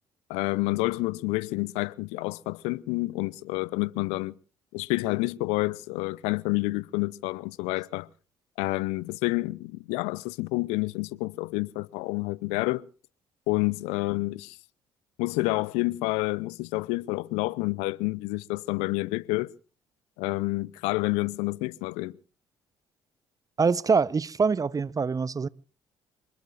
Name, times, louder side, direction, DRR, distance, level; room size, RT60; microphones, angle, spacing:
voice 1, 0.3-4.3 4.7-8.1 8.6-12.9 13.5-14.6 15.2-19.5 20.2-22.1, left 22 dB, 75° left, 0.7 m, -29 dB
voice 2, 23.6-25.5, right 5 dB, 30° right, 0.9 m, -24 dB
26.5 x 20.5 x 2.6 m
hypercardioid pair, 50°, 11 cm